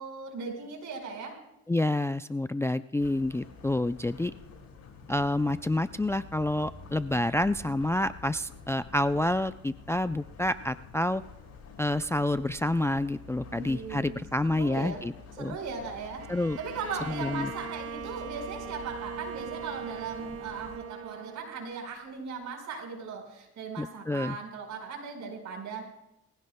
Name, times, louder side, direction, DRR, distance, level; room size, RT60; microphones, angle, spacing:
voice 1, 0.0-1.4 13.4-14.2 14.4-15.0 15.4-16.3 16.6-25.8, right 5 dB, 75° right, 1 dB, 5.1 m, -38 dB
voice 2, 1.7-4.3 5.1-11.2 11.8-15.6 16.3-16.6 17.1-17.5 23.8-24.4, left 1 dB, 10° left, 12 dB, 0.4 m, -28 dB
sound 1, 3.0-20.8, left 5 dB, 65° left, 5.2 m, -49 dB
Bowed string instrument, 16.2-21.9, right 6 dB, 50° right, 0.9 m, -41 dB
22.5 x 16.0 x 2.2 m, 0.86 s
cardioid pair, 90°, 30 cm